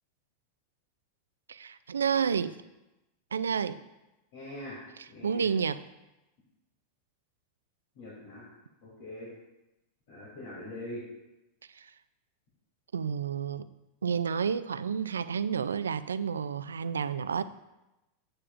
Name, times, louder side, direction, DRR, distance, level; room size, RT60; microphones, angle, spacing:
voice 1, 1.5-2.6 3.3-3.8 5.2-5.8 11.7-11.9 12.9-13.7 14.0-17.4, right 6 dB, 90° right, 14 dB, 0.3 m, -30 dB
voice 2, 4.3-4.8 5.1-5.5 7.9-8.4 8.8-9.3 10.1-11.0, left 1 dB, 65° left, -6 dB, 3.0 m, -42 dB
8.7 x 8.6 x 2.5 m, 0.97 s
hypercardioid pair, 100°, 0 cm